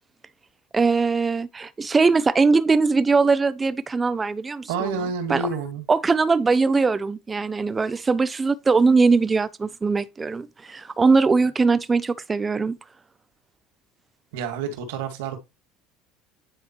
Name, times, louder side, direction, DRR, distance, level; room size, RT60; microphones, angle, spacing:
voice 1, 0.7-5.0 5.3-5.4 5.9-12.8, right 4 dB, 20° right, 0.8 m, -21 dB
voice 2, 4.7-5.9 14.3-15.4, right 5 dB, 85° right, 2.3 m, -29 dB
9.9 x 3.5 x 4.6 m
supercardioid pair, 105°, 0 cm